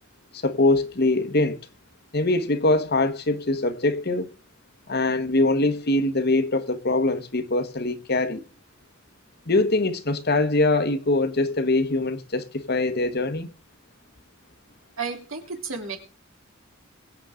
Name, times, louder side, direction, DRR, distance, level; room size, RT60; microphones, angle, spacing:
voice 1, 0.4-1.6 2.1-4.3 4.9-8.4 9.5-13.5, left 2 dB, 50° left, 1.3 m, -23 dB
voice 2, 15.0-16.0, right 5 dB, 85° right, 3.6 m, -32 dB
22.5 x 8.0 x 3.8 m
head